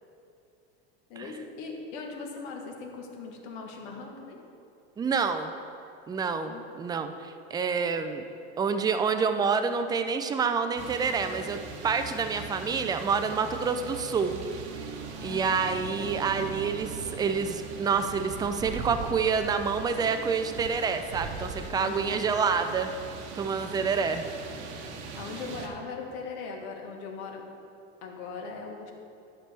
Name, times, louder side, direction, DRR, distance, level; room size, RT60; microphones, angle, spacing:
voice 1, 1.1-4.4 6.5-6.6 15.2-15.6 21.8-22.2 24.0-24.1 25.1-27.4 28.0-28.9, left 4 dB, 60° left, 2 dB, 1.4 m, -40 dB
voice 2, 5.0-5.5 6.1-8.3 8.6-14.4 15.2-22.9 23.3-24.3, right 5 dB, 10° right, 8 dB, 0.3 m, -28 dB
sound 1, 10.8-25.7, right 4 dB, 80° right, 1.1 m, -40 dB
11.0 x 6.0 x 3.3 m, 2.7 s
supercardioid pair, 115°, 34 cm